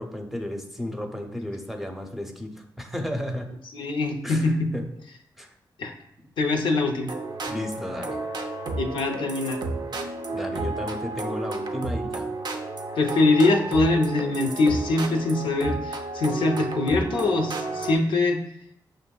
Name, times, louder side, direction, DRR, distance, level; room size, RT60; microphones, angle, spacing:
voice 1, 0.0-3.5 4.2-4.9 5.4-5.5 6.2-6.3 7.5-8.2 10.3-12.3, left 1 dB, 5° right, 3 dB, 0.6 m, -33 dB
voice 2, 3.7-4.7 5.8-5.9 6.4-7.1 8.8-9.6 13.0-18.4, left 3 dB, 85° left, 3 dB, 0.5 m, -23 dB
sound 1, 7.1-18.0, right 3 dB, 60° right, 0.5 m, -32 dB
6.4 x 2.6 x 2.2 m, 0.76 s
cardioid pair, 75°, 8 cm